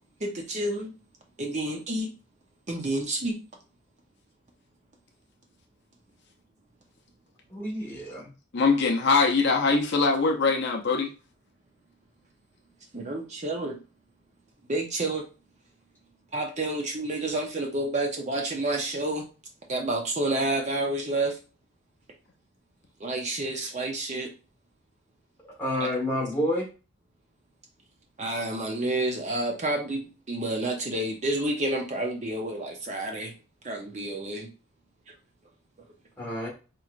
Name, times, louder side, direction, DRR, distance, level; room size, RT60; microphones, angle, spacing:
voice 1, 0.2-0.9 1.4-2.1 2.7-3.4 12.9-13.8 14.7-15.3 16.3-19.2 19.7-21.4 23.0-24.3 25.8-25.9 28.2-33.3 33.6-34.5, right 2 dB, 30° right, 2 dB, 0.6 m, -29 dB
voice 2, 7.5-8.3 25.6-26.7 36.2-36.5, left 1 dB, 10° left, -3 dB, 1.4 m, -29 dB
voice 3, 8.5-11.1, left 4 dB, 50° left, 2 dB, 0.6 m, -22 dB
4.8 x 3.0 x 2.4 m, 0.33 s
head